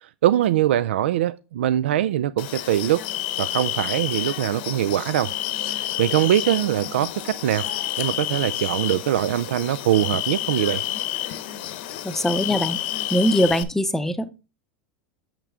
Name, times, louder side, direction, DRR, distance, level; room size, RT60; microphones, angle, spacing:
voice 1, 0.0-3.0 3.4-5.3 5.7-7.7 8.0-10.8, right 12 dB, 85° right, 0.3 m, -22 dB
sound 1, 2.4-13.6, left 13 dB, 65° left, 0.8 m, -29 dB
voice 2, 12.0-12.8 13.1-14.3, equal, 5° left, 0.7 m, -22 dB
6.7 x 5.9 x 3.6 m
hypercardioid pair, 110°, 6 cm